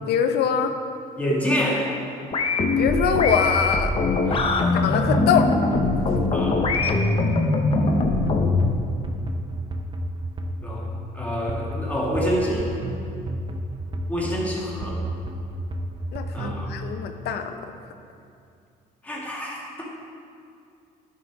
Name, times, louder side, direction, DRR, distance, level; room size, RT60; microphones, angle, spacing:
voice 1, 0.0-0.8 2.8-3.9 4.7-5.5 16.1-17.5, left 7 dB, 75° left, 7 dB, 0.7 m, -23 dB
voice 2, 1.2-2.0 4.3-4.8 6.3-6.6 10.6-10.9 11.1-12.7 14.1-15.0 16.3-16.7 19.0-19.9, equal, 10° left, -4 dB, 2.1 m, -27 dB
sound 1, 2.3-8.8, left 3 dB, 35° left, 0.8 m, -22 dB
sound 2, 2.6-16.8, right 1 dB, 30° right, 0.7 m, -32 dB
11.0 x 5.7 x 4.7 m, 2.4 s
cardioid pair, 110°, 17 cm